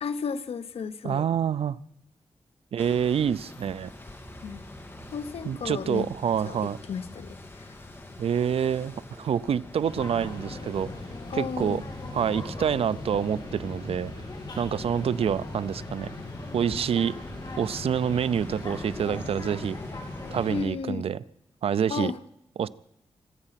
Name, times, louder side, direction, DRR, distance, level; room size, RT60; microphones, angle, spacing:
voice 1, 0.0-1.2 4.4-4.6 5.1-6.1 6.4-6.6 6.9-7.7 11.3-11.8 20.5-21.1 21.9-22.2, left 6 dB, 85° left, 0.8 m, -33 dB
voice 2, 1.0-1.8 2.7-3.9 5.4-6.8 8.2-10.9 11.3-11.8 12.1-14.1 14.6-16.1 16.5-17.2 17.6-19.8 20.3-21.2 21.6-22.1 22.6-22.7, right 8 dB, 80° right, 0.5 m, -27 dB
sound 1, 2.8-20.6, left 2 dB, 25° left, 1.9 m, -46 dB
sound 2, 9.8-20.7, left 2 dB, 45° left, 2.6 m, -39 dB
25.0 x 8.9 x 5.8 m
wide cardioid pair, 125°, 10 cm